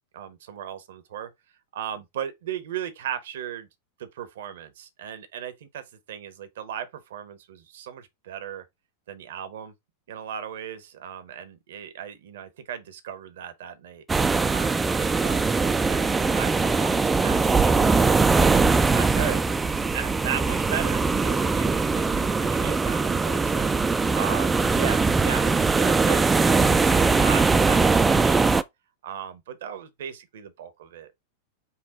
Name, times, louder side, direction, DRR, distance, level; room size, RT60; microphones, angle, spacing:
voice 1, 0.1-1.3 1.7-3.7 4.0-8.6 9.1-9.7 10.1-14.1 14.5-19.4 19.9-28.5 29.0-31.1, right 9 dB, 60° right, 0.8 m, -36 dB
sound 1, 14.1-28.6, right 4 dB, 10° right, 0.3 m, -21 dB
5.7 x 2.3 x 3.8 m
figure-of-eight pair, 90°, 0 cm